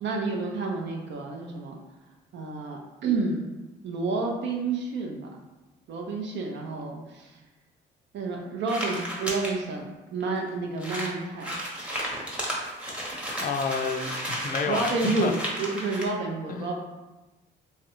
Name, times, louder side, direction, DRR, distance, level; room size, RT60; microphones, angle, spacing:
voice 1, 0.0-1.8 2.3-3.4 3.8-5.4 5.9-7.4 8.1-11.9 14.7-16.8, right 3 dB, 65° right, 1 dB, 0.5 m, -30 dB
sound 1, 8.7-9.5 10.2-10.3 10.5-10.6 10.8-16.1, equal, 5° right, 0.8 m, -33 dB
voice 2, 13.4-15.3 16.5-16.7, left 5 dB, 45° left, 5 dB, 0.4 m, -30 dB
3.1 x 2.4 x 2.9 m, 1.1 s
cardioid pair, 90°, 20 cm